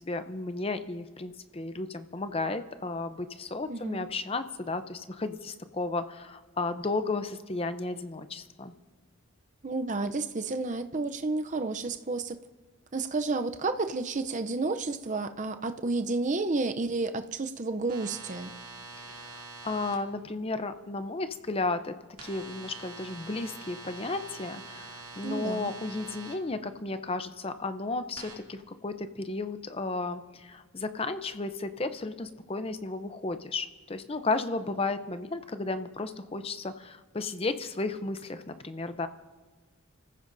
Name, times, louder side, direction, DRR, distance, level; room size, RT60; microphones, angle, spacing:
voice 1, 0.0-8.7 19.0-21.9 22.2-39.1, left 3 dB, 25° left, 10 dB, 0.6 m, -34 dB
voice 2, 3.7-4.0 9.6-12.4 12.9-18.5 25.2-25.7, right 3 dB, 35° right, 8 dB, 0.6 m, -31 dB
sound 1, 17.9-20.0 22.2-26.3 28.2-28.4, right 3 dB, 80° right, 2.7 m, -45 dB
30.0 x 15.0 x 2.6 m, 1.3 s
head